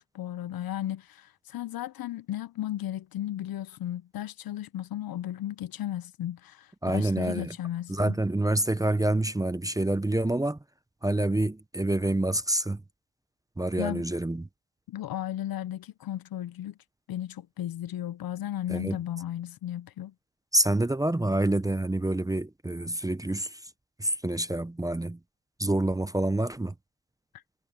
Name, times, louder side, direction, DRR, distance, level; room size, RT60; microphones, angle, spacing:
voice 1, 0.0-8.2 13.8-14.0 14.9-16.8 17.1-20.1, left 12 dB, 60° left, 0.6 m, -35 dB
voice 2, 6.8-7.5 7.9-10.6 11.0-12.8 13.6-14.5 18.7-19.0 20.5-23.7 24.0-25.2 25.6-26.7, right 1 dB, 10° right, 0.5 m, -27 dB
cardioid pair, 125°, 41 cm